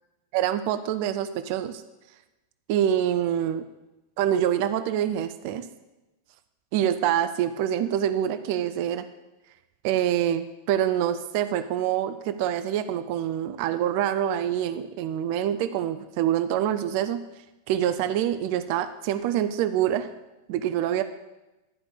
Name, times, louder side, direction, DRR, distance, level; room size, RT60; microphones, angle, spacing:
voice 1, 0.3-1.8 2.7-3.6 4.2-5.7 6.7-9.0 9.8-17.2 17.7-20.1 20.5-21.0, right 10 dB, 45° right, 11 dB, 0.5 m, -26 dB
11.5 x 5.1 x 6.8 m, 1.0 s
figure-of-eight pair, 90°, 0 cm